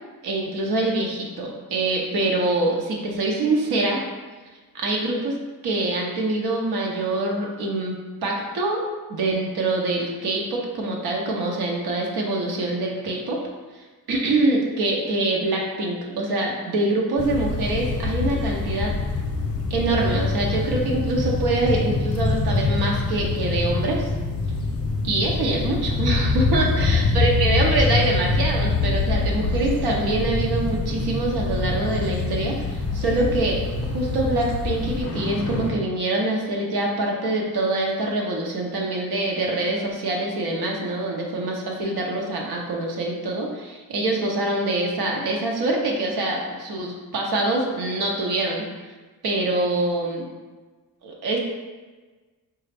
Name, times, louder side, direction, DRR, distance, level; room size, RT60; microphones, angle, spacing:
voice 1, 0.2-4.0 4.7-5.4 5.6-8.0 8.2-8.8 9.1-13.4 14.1-18.9 19.7-24.1 25.0-33.6 33.9-48.6 49.2-50.3 51.0-51.4, right 2 dB, 90° right, -1 dB, 0.7 m, -25 dB
sound 1, 17.2-35.7, left 3 dB, 40° left, 0.6 m, -25 dB
3.9 x 2.3 x 3.3 m, 1.3 s
cardioid pair, 105°, 37 cm